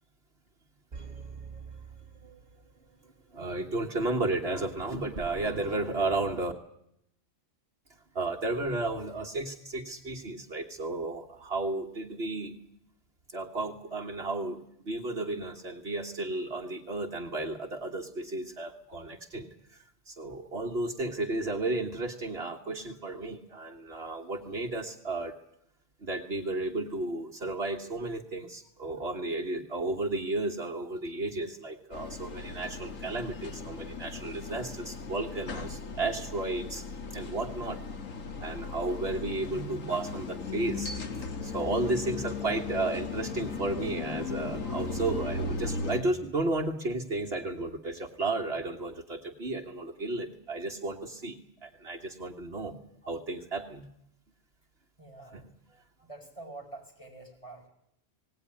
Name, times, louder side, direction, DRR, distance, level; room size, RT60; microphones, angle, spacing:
sound 1, 0.9-3.1 3.4-3.5, right 5 dB, 35° right, 1.5 m, -45 dB
voice 1, 3.3-6.5 8.2-12.5 13.3-14.6 14.9-19.5 20.1-25.3 26.0-36.8 37.1-37.8 38.4-51.4 51.6-52.8 53.1-53.9 55.3-55.4, right 2 dB, 50° right, 1 dB, 1.8 m, -33 dB
sound 2, 31.9-46.0, left 4 dB, 85° left, 1.9 m, -37 dB
voice 2, 55.0-55.5 56.0-57.7, right 2 dB, 25° left, 1 dB, 6.0 m, -46 dB
18.5 x 18.0 x 9.8 m, 0.74 s
omnidirectional pair, 1.3 m